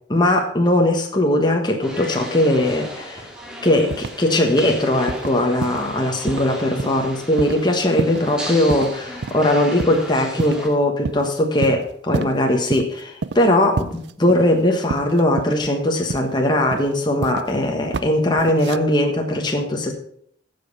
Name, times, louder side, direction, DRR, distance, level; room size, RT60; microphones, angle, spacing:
voice 1, 0.1-3.2 3.6-19.9, left 1 dB, 25° left, 2 dB, 1.3 m, -19 dB
sound 1, 1.8-10.7, equal, 5° right, 2.3 m, -36 dB
sound 2, 3.9-4.3 4.6-4.8 5.1-5.3 5.6-5.9 6.3-6.5 6.8-7.1 7.4-7.6 8.0-8.3 8.7-8.9 9.2-9.4 9.8-10.0 10.4-10.7 11.1-11.3 11.6-12.3 12.7-12.9 13.2-13.5 13.8-14.6 14.9-15.7 16.1-16.4 16.7-17.5 17.9-18.1 18.4-18.8, right 4 dB, 70° right, 0.5 m, -28 dB
15.0 x 5.3 x 5.4 m, 0.64 s
head